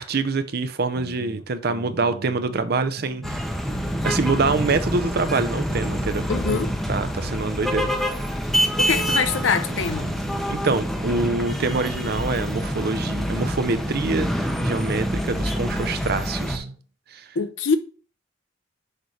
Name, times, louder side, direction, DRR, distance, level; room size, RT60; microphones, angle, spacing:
voice 1, 0.0-3.5 4.0-6.3 6.9-7.9 10.5-16.7 17.1-17.3, right 3 dB, 55° right, 0.6 m, -25 dB
sound 1, 1.0-3.4 3.7-7.4 7.7-11.4 11.7-15.4 15.7-16.8, right 2 dB, 75° right, 0.9 m, -39 dB
sound 2, 3.2-16.6, equal, ahead, 0.7 m, -26 dB
voice 2, 6.3-6.7 8.8-10.1 17.3-17.8, left 5 dB, 85° left, 0.7 m, -24 dB
6.6 x 3.2 x 4.9 m
head